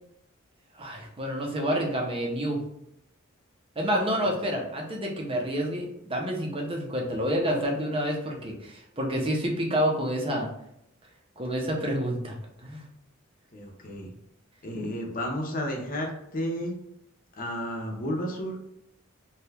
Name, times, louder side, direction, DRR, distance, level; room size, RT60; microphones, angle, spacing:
voice 1, 0.8-2.6 3.8-10.5 11.4-12.3 12.6-12.8, equal, 25° right, 0 dB, 0.6 m, -28 dB
voice 2, 13.5-14.1 14.6-16.7 17.4-18.6, equal, 40° left, 1 dB, 0.6 m, -32 dB
2.8 x 2.3 x 3.3 m, 0.76 s
head